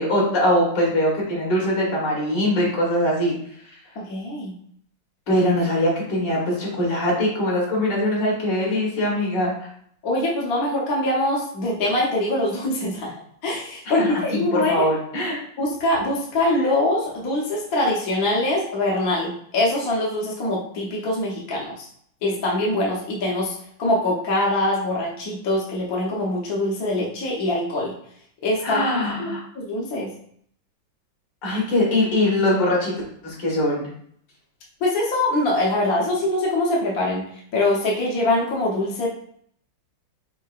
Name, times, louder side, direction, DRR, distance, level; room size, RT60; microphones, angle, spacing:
voice 1, 0.0-3.3 5.3-9.5 13.9-15.4 28.6-29.4 31.4-32.9 33.2-33.9, left 1 dB, 75° left, -4 dB, 2.1 m, -22 dB
voice 2, 4.0-4.5 10.0-13.1 13.4-14.9 15.6-21.9 22.2-23.5 23.8-27.9 28.4-28.8 29.2-30.1 34.8-39.1, left 1 dB, 60° left, -4 dB, 1.3 m, -23 dB
4.6 x 4.5 x 2.4 m, 0.65 s
omnidirectional pair, 2.0 m